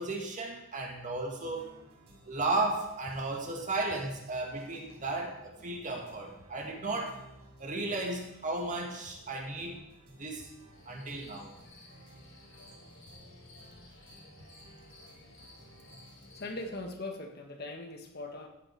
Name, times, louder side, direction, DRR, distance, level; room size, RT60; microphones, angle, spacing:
voice 1, 0.0-1.7 2.3-7.2 7.6-9.9 10.2-10.5 10.9-11.5, right 2 dB, 35° right, 2 dB, 2.0 m, -34 dB
sound 1, 1.4-16.9, right 1 dB, 70° right, 4.5 m, -56 dB
sound 2, 10.7-16.5, left 2 dB, 65° left, 3.7 m, -55 dB
voice 2, 16.3-18.5, left 2 dB, 45° left, 4 dB, 1.6 m, -40 dB
14.5 x 8.8 x 4.7 m, 0.88 s
head